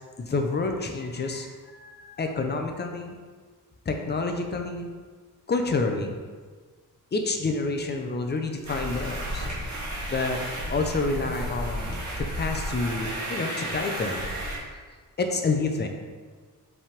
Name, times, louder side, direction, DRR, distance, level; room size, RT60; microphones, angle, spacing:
voice 1, 0.2-3.2 3.9-4.9 5.5-6.2 7.1-9.5 10.1-10.4 10.7-14.3 15.2-15.9, left 3 dB, 30° left, 4 dB, 0.6 m, -28 dB
sound 1, 8.6-14.6, right 1 dB, 55° right, 1.8 m, -33 dB
5.4 x 3.5 x 5.1 m, 1.5 s
wide cardioid pair, 155°, 33 cm